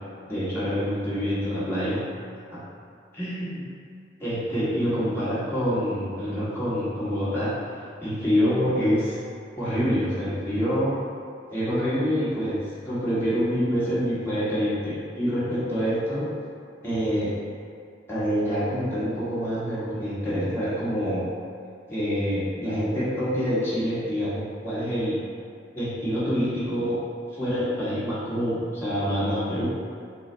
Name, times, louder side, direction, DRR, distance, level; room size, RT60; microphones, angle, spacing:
voice 1, 0.3-2.0 2.5-2.6 3.1-3.6 4.2-7.5 8.0-9.2 9.6-10.9 11.5-16.3 16.8-17.3 18.1-21.2 21.9-25.2 25.7-27.0 27.3-29.7, equal, 15° left, -12 dB, 1.5 m, -26 dB
5.9 x 2.0 x 3.3 m, 2.4 s
head